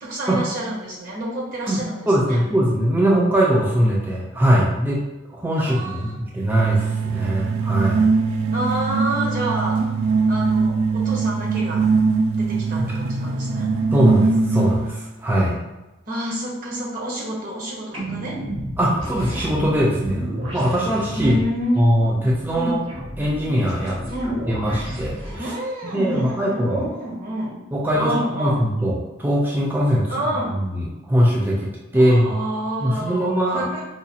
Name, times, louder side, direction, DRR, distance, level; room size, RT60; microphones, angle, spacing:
voice 1, 0.0-2.4 5.6-6.2 8.5-9.8 10.3-11.8 12.3-13.8 16.1-18.4 21.2-21.9 22.5-22.8 24.1-24.4 25.4-27.6 27.9-28.7 30.1-30.6 31.9-33.9, right 1 dB, 40° right, -3 dB, 1.0 m, -28 dB
voice 2, 2.1-5.0 5.3-8.1 12.8-12.9 13.9-15.6 18.8-21.4 21.8-22.8 23.2-24.0 24.5-25.4 25.8-26.9 27.7-30.1 30.6-31.7 31.9-32.3 32.8-33.7, equal, 10° right, -4 dB, 0.4 m, -21 dB
sound 1, 6.4-15.0, right 4 dB, 75° right, 0.3 m, -21 dB
sound 2, 17.9-25.4, equal, 60° right, 1.5 m, -32 dB
4.8 x 2.3 x 2.7 m, 1.1 s
head